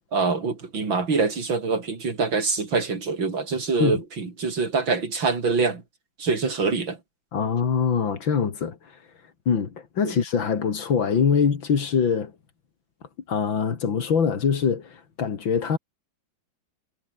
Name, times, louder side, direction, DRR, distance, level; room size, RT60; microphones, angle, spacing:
voice 1, 0.1-5.8 6.2-7.0, right 4 dB, 80° right, 4.6 m, -25 dB
voice 2, 7.3-8.8 9.5-12.3 13.3-15.8, left 6 dB, 85° left, 3.0 m, -23 dB
omnidirectional pair, 2.1 m